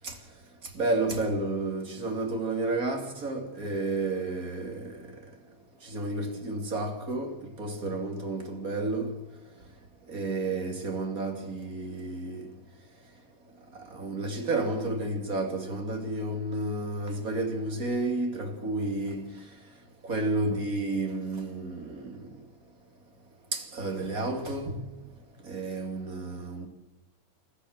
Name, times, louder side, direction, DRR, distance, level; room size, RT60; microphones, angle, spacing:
voice 1, 0.7-5.1 5.8-9.2 10.1-12.5 13.9-19.3 20.0-22.2 23.5-24.8 25.5-26.7, right 2 dB, 30° right, 2.8 m, -31 dB
29.0 x 14.0 x 6.6 m
omnidirectional pair, 3.7 m